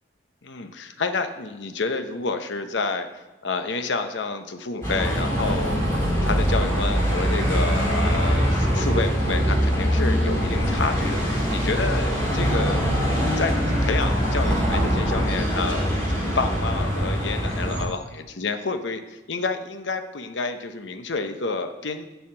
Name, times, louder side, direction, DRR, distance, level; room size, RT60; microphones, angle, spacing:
voice 1, 0.4-3.1 3.4-5.8 6.2-12.8 13.4-13.6 13.8-15.9 16.3-22.0, left 4 dB, 75° left, 8 dB, 0.8 m, -29 dB
Bus, 4.8-17.8, equal, 15° left, 3.1 m, -23 dB
7.0 x 5.7 x 7.5 m, 1.1 s
head